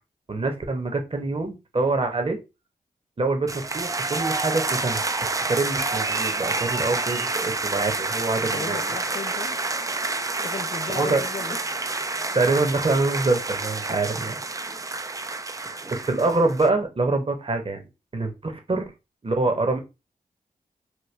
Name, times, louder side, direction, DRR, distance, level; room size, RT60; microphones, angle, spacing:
voice 1, 0.3-2.4 3.2-5.0 5.5-9.0 10.9-11.2 12.3-14.4 15.6-15.8 16.1-18.9 19.2-19.8, right 3 dB, 35° right, 0.9 m, -25 dB
sound 1, 3.5-16.7, right 3 dB, 20° right, 0.3 m, -28 dB
voice 2, 8.4-9.6 10.4-11.6 18.7-18.8, left 5 dB, 45° left, 0.4 m, -35 dB
3.1 x 2.2 x 3.2 m
cardioid pair, 40°, 16 cm